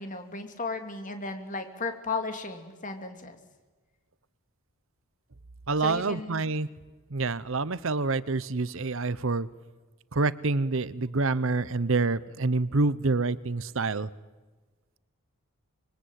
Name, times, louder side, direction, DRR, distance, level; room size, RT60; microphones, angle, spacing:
voice 1, 0.0-3.4 5.8-6.5, left 3 dB, 35° left, 6 dB, 3.0 m, -35 dB
voice 2, 5.7-6.7 7.1-9.5 10.1-14.1, right 3 dB, 65° right, 17 dB, 0.9 m, -27 dB
26.0 x 22.5 x 9.3 m, 1.3 s
head